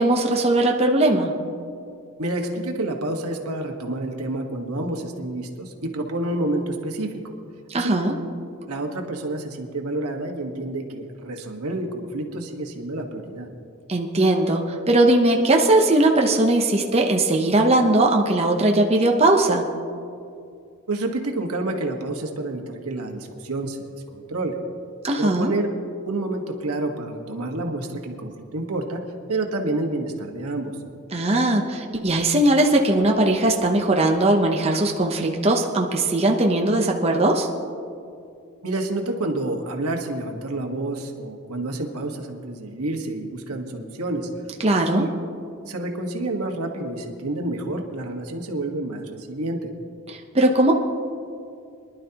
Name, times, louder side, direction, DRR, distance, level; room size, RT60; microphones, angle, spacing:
voice 1, 0.0-1.3 7.7-8.1 13.9-19.7 25.0-25.5 31.1-37.5 44.6-45.1 50.1-50.7, right 1 dB, 30° right, 1 dB, 0.8 m, -19 dB
voice 2, 2.2-7.3 7.7-8.0 8.7-13.5 20.9-24.6 25.2-25.7 26.0-29.0 29.3-30.7 38.6-44.3 44.9-45.1 45.7-49.7, right 2 dB, 85° right, 3 dB, 1.4 m, -29 dB
23.5 x 11.5 x 2.9 m, 2.4 s
head